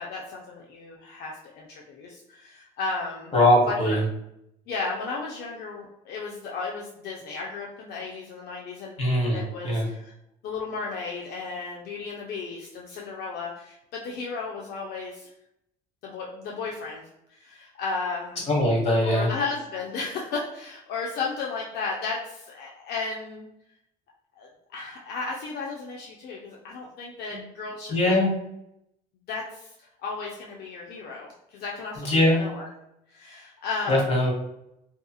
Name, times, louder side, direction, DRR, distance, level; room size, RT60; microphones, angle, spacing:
voice 1, 0.0-3.3 3.7-4.0 4.7-9.0 9.3-10.1 10.4-15.3 16.0-17.0 17.4-18.4 19.0-23.5 24.4-28.2 29.3-29.7 30.0-32.7 33.1-34.2, left 4 dB, 70° left, -2 dB, 0.5 m, -34 dB
voice 2, 3.3-4.0 9.0-9.9 18.5-19.3 27.3-27.4 27.9-28.3 32.0-32.4 33.9-34.3, left 1 dB, 40° left, -2 dB, 1.1 m, -21 dB
2.8 x 2.3 x 2.3 m, 0.80 s
cardioid pair, 110°, 17 cm